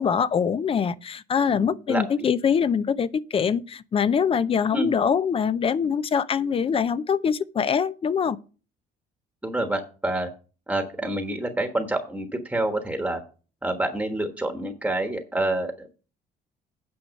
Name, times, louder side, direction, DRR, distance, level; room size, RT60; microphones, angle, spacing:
voice 1, 0.0-8.4, left 7 dB, 35° left, 0.5 m, -23 dB
voice 2, 1.5-2.3 4.7-4.9 9.4-10.3 10.7-13.2 13.6-16.1, right 1 dB, 5° right, 1.3 m, -28 dB
9.4 x 6.2 x 5.2 m
cardioid pair, 110°, 17 cm